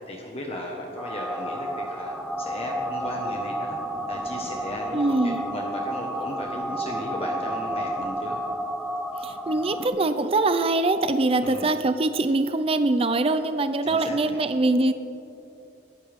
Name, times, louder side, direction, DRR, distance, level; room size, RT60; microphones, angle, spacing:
voice 1, 0.1-3.8 4.1-8.4 11.4-11.7 13.8-14.4, left 1 dB, 35° left, 0 dB, 1.5 m, -36 dB
sound 1, 1.0-9.9, right 1 dB, ahead, 0.8 m, -31 dB
voice 2, 4.9-5.5 9.2-14.9, right 2 dB, 35° right, 10 dB, 0.5 m, -23 dB
22.5 x 13.0 x 3.7 m, 2.8 s
head